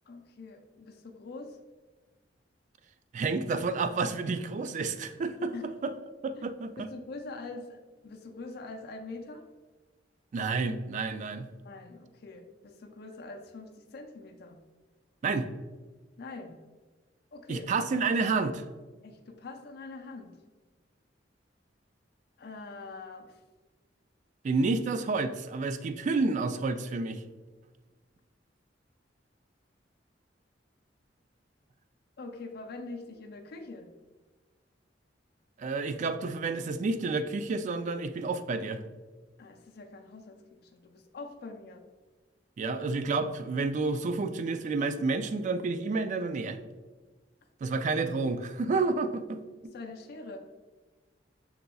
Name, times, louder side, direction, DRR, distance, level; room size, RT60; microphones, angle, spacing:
voice 1, 0.1-1.6 5.5-5.7 6.3-6.4 6.8-7.8 8.0-9.4 11.6-14.6 16.2-16.6 17.3-17.7 19.0-20.3 22.4-23.3 32.2-33.9 39.4-41.8 49.7-50.4, left 3 dB, 60° left, 3 dB, 0.5 m, -44 dB
voice 2, 3.1-5.5 5.8-5.9 6.2-6.9 10.3-11.5 15.2-15.5 17.5-18.7 24.4-27.2 35.6-38.8 42.6-46.6 47.6-49.4, right 3 dB, 45° right, 11 dB, 0.3 m, -30 dB
5.9 x 3.9 x 2.3 m, 1.3 s
head